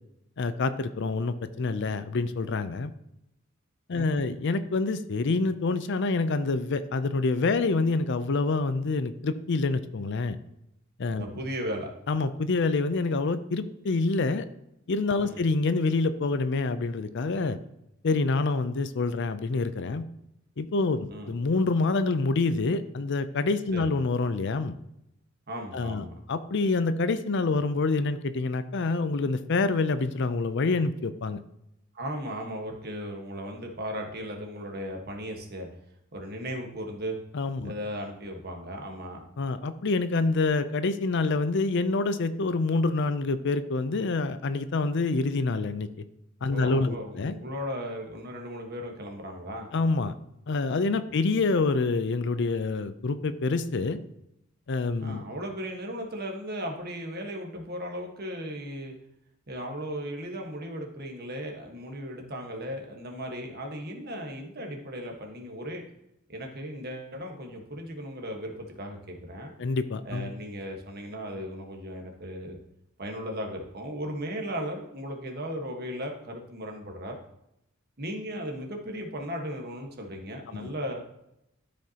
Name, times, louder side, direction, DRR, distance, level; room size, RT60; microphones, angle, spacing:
voice 1, 0.4-2.9 3.9-10.4 11.0-11.2 12.1-14.5 14.9-17.6 18.0-20.1 20.6-24.8 25.7-31.4 37.3-37.7 39.4-45.9 46.4-47.3 49.7-50.1 50.5-54.0 54.7-55.2 69.6-70.3 80.5-80.7, left 3 dB, 60° left, 12 dB, 0.5 m, -27 dB
voice 2, 3.9-4.3 11.2-11.9 15.2-15.4 21.1-21.3 23.7-23.8 25.5-26.2 31.9-35.7 36.1-37.1 37.6-39.2 46.5-49.7 55.0-58.9 59.5-65.8 66.3-69.5 70.0-72.6 73.0-77.1 78.0-81.0, equal, 50° right, 2 dB, 1.4 m, -36 dB
13.0 x 5.2 x 2.9 m, 0.84 s
head